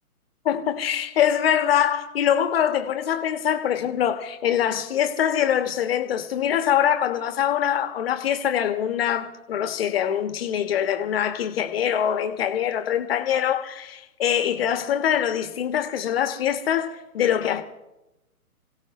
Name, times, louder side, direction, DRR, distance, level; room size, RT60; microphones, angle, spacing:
voice 1, 0.4-17.6, left 9 dB, 40° left, 1.6 m, -24 dB
27.0 x 17.0 x 3.2 m
hypercardioid pair, 150°, 44 cm